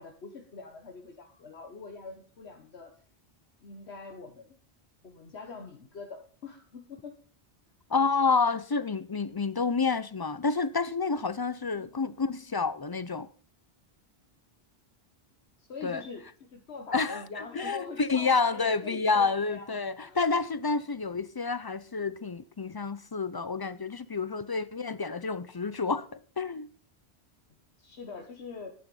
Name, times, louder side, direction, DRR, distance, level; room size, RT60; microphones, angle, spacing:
voice 1, 0.0-3.0 3.6-4.5 5.0-7.1 11.7-11.9 15.6-16.2 16.5-19.8 20.0-20.2 20.7-20.8 24.3-24.5 27.8-28.7, left 4 dB, 80° left, 1.5 m, -44 dB
voice 2, 7.9-13.3 15.8-16.0 16.9-26.7, left 4 dB, 35° left, 0.4 m, -29 dB
10.5 x 9.0 x 5.4 m
omnidirectional pair, 1.1 m